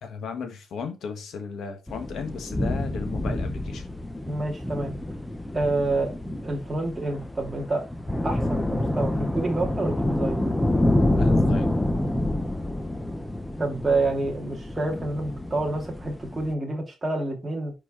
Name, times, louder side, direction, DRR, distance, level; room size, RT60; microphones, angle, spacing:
voice 1, 0.0-3.9 11.1-11.7, left 5 dB, 80° left, 1.8 m, -35 dB
sound 1, 1.9-16.5, left 1 dB, 5° left, 0.7 m, -27 dB
voice 2, 4.3-4.9 5.5-7.8 8.2-10.4 13.6-17.7, right 2 dB, 15° right, 2.6 m, -28 dB
6.1 x 4.9 x 4.3 m
wide cardioid pair, 160°, 0 cm